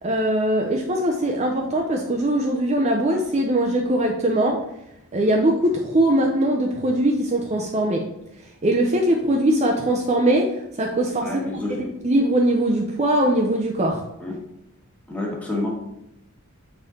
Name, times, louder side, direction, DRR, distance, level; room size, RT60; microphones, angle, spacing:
voice 1, 0.0-4.6 5.1-8.0 8.6-10.5 10.8-14.0, right 1 dB, 30° right, 1 dB, 0.5 m, -21 dB
voice 2, 11.2-11.9 14.2-14.4 15.1-15.7, left 2 dB, 5° left, -3 dB, 1.4 m, -29 dB
6.7 x 4.4 x 3.6 m, 0.81 s
head